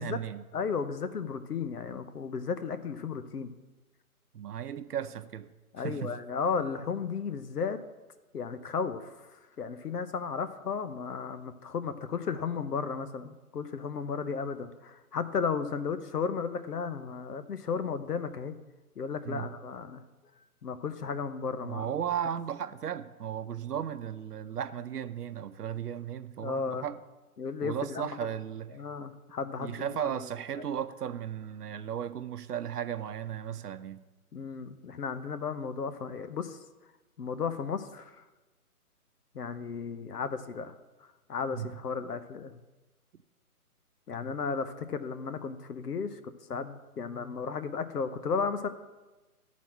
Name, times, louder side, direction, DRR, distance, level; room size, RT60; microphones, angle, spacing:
voice 1, 0.0-0.4 4.3-5.5 5.8-6.2 19.2-19.5 21.6-27.0 27.6-28.8 29.5-34.1 41.5-41.7, right 9 dB, 85° right, 0.7 m, -35 dB
voice 2, 0.5-3.5 5.7-7.8 8.3-18.5 19.0-20.0 20.6-21.9 26.4-26.9 27.4-28.1 28.7-30.1 34.3-36.6 37.2-38.2 39.3-40.7 41.0-42.5 44.1-48.7, left 5 dB, 90° left, 1.0 m, -34 dB
12.0 x 4.2 x 7.3 m
hypercardioid pair, 170°, 45 cm